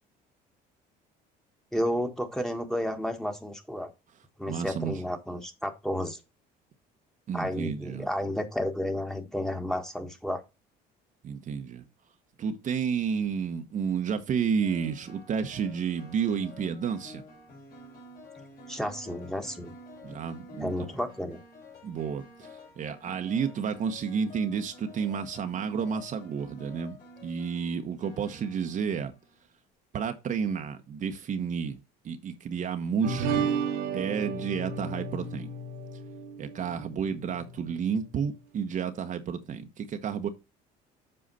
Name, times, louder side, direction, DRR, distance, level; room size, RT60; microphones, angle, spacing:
voice 1, 1.7-3.9 4.4-6.2 7.3-10.4 18.7-19.7 20.6-21.4, equal, ahead, 1.5 m, -32 dB
voice 2, 4.5-5.0 7.3-8.1 11.2-11.8 12.4-17.2 20.0-20.9 21.8-22.5 22.8-27.0 27.2-29.1 29.9-33.5 33.9-35.5 36.4-40.3, right 6 dB, 45° right, 1.0 m, -31 dB
sound 1, 13.0-13.3 14.6-29.4, left 1 dB, 55° left, 3.5 m, -50 dB
sound 2, 33.0-37.7, right 5 dB, 85° right, 1.8 m, -33 dB
7.8 x 4.9 x 4.1 m
cardioid pair, 105°, 18 cm